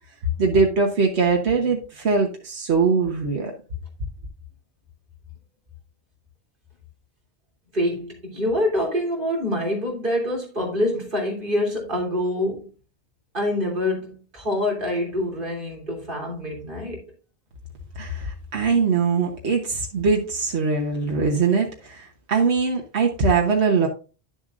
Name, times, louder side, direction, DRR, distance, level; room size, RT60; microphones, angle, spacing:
voice 1, 0.4-3.5 18.0-23.9, right 4 dB, 85° right, 1.5 m, -22 dB
voice 2, 7.7-12.7 13.3-17.0, left 1 dB, 50° right, 3.3 m, -26 dB
10.5 x 7.1 x 2.5 m
omnidirectional pair, 1.1 m